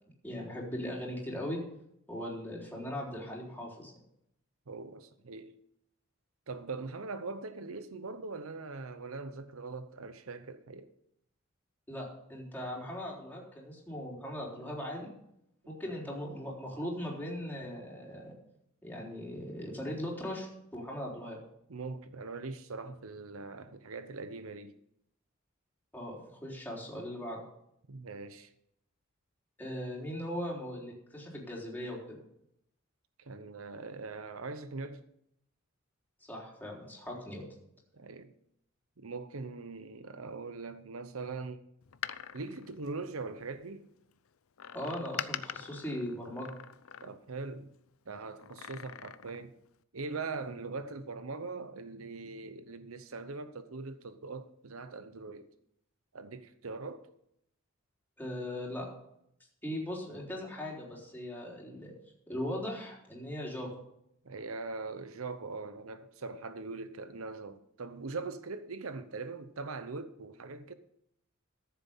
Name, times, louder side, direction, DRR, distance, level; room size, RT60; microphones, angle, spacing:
voice 1, 0.2-1.6 2.1-3.9 11.9-15.1 15.7-18.4 18.8-21.4 25.9-27.4 29.6-32.2 36.2-37.5 44.7-46.5 58.2-58.9 59.6-61.9 62.3-63.7, left 1 dB, 10° left, 3.9 m, -39 dB
voice 2, 4.7-5.6 6.5-10.9 21.7-24.7 27.9-28.5 33.2-35.0 37.9-38.3 39.0-41.7 42.3-43.9 47.0-47.7 48.1-49.5 49.9-55.5 56.1-57.1 64.2-70.7, right 3 dB, 80° right, 0.8 m, -41 dB
Door, 41.8-43.6 44.6-47.5 48.4-49.5 49.8-49.9, left 9 dB, 80° left, 0.6 m, -43 dB
14.0 x 7.6 x 5.5 m
head